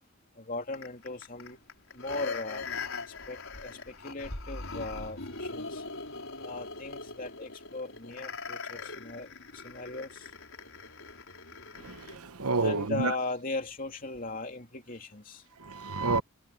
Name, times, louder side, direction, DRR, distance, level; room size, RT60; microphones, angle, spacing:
voice 1, 0.4-1.6 1.9-2.6 3.3-5.8 6.4-10.3 12.6-15.4, left 2 dB, 40° left, 3.1 m, -38 dB
sound 1, 0.7-12.2 12.6-12.7, left 4 dB, 65° left, 5.5 m, -41 dB
voice 2, 11.8-13.1 15.6-16.2, right 3 dB, 85° right, 1.1 m, -29 dB
head